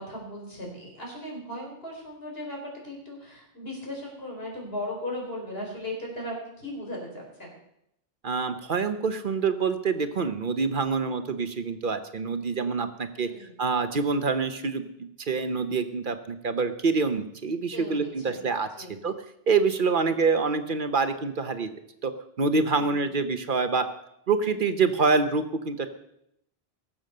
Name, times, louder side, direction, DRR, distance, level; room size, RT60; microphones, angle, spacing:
voice 1, 0.0-2.6 2.8-7.5 13.1-13.5 17.7-18.4 18.8-18.9 22.7-23.1, left 1 dB, 70° left, -1 dB, 4.5 m, -37 dB
voice 2, 8.2-13.3 13.6-14.8 15.2-18.7 19.0-19.1 19.5-21.7 22.0-22.1 22.4-23.8 24.3-25.9, right 4 dB, 55° right, 10 dB, 1.0 m, -26 dB
18.0 x 7.4 x 6.6 m, 0.79 s
omnidirectional pair, 1.1 m